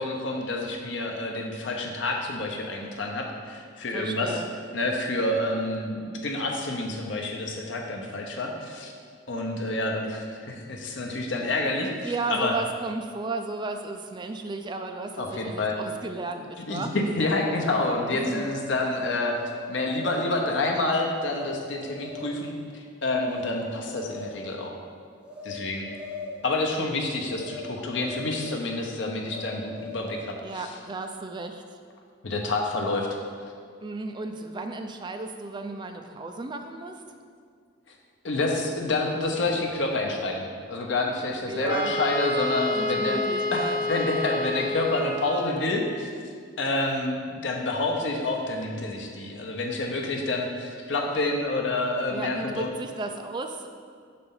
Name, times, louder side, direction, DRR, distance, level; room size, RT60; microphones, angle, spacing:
voice 1, 0.0-4.4 4.7-8.9 9.3-12.5 15.2-15.8 16.7-19.4 19.7-24.7 25.4-25.9 26.4-30.7 32.2-33.1 38.2-43.2 43.5-46.1 46.6-52.7, left 2 dB, 70° left, 1 dB, 0.9 m, -28 dB
voice 2, 3.9-4.5 12.0-17.0 18.1-18.5 30.4-31.8 33.8-37.0 41.5-42.0 42.7-43.8 52.1-53.7, right 3 dB, 25° right, 6 dB, 0.3 m, -34 dB
sound 1, 17.6-18.7 19.3-19.6 19.9-20.5 21.3-21.5 21.9-22.4 23.2-23.5 23.8-24.5 25.2-25.5 25.8-26.5 27.4-27.6 27.9-28.7 29.3-30.3, left 2 dB, 5° right, 0.8 m, -39 dB
Wind instrument woodwind instrument, 41.7-45.7, left 2 dB, 40° left, 0.6 m, -29 dB
5.5 x 4.2 x 5.6 m, 2.1 s
head